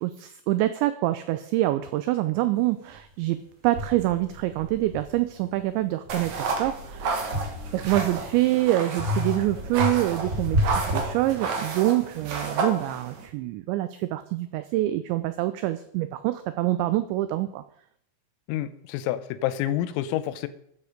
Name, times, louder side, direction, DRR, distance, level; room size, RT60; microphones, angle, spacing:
voice 1, 0.0-3.4 3.6-7.3 7.7-17.6, right 16 dB, 85° right, 12 dB, 2.5 m, -26 dB
sound 1, 2.9-3.0 3.7-5.6 6.1-8.4 9.0-11.8, left 1 dB, 20° right, 2.9 m, -31 dB
sound 2, 6.1-13.3, right 4 dB, 60° right, 1.9 m, -31 dB
voice 2, 18.5-20.5, left 12 dB, 85° left, 13 dB, 3.5 m, -28 dB
13.0 x 9.5 x 5.1 m, 0.71 s
omnidirectional pair, 5.9 m